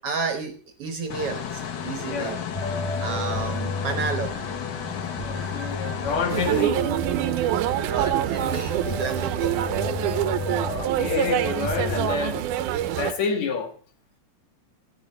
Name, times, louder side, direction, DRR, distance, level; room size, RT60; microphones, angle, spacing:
voice 1, 0.0-2.4 3.0-4.3 7.9-9.6, right 5 dB, 60° right, 1.8 m, -31 dB
sound 1, 1.1-6.6, left 8 dB, 85° left, 0.9 m, -33 dB
voice 2, 2.0-2.4 5.2-6.8 10.7-12.4 13.0-13.7, left 5 dB, 70° left, 3.0 m, -28 dB
sound 2, 2.5-12.1, left 2 dB, 10° left, 3.5 m, -33 dB
sound 3, 6.3-13.1, right 11 dB, 90° right, 2.2 m, -25 dB
15.0 x 9.6 x 4.3 m
omnidirectional pair, 3.5 m